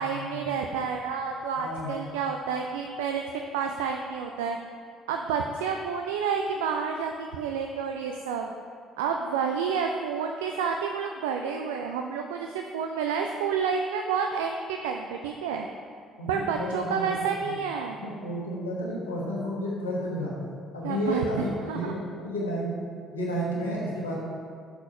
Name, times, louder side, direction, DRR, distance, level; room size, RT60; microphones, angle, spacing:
voice 1, 0.0-4.6 5.1-8.5 9.0-15.7 16.3-18.0 20.8-21.9, right 6 dB, 75° right, 3 dB, 0.3 m, -29 dB
voice 2, 1.6-1.9 16.2-17.1 17.4-17.6 18.0-20.3 20.7-22.9 23.1-24.1, equal, 85° left, -5 dB, 1.2 m, -31 dB
6.0 x 4.8 x 5.4 m, 2.2 s
figure-of-eight pair, 50°, 0 cm